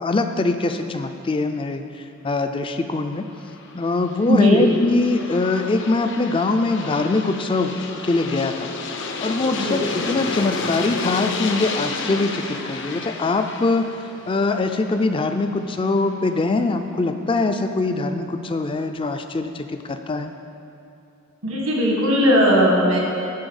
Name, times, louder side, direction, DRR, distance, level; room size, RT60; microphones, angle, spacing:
voice 1, 0.0-1.8 2.2-3.3 3.7-7.8 8.0-8.7 9.2-20.3, left 3 dB, 25° left, 7 dB, 0.4 m, -23 dB
Aircraft, 3.2-16.1, left 3 dB, 60° left, 0.7 m, -31 dB
voice 2, 4.3-4.6 9.5-9.8 21.4-23.0, equal, 85° right, -1 dB, 1.7 m, -17 dB
9.9 x 3.9 x 7.1 m, 2.8 s
head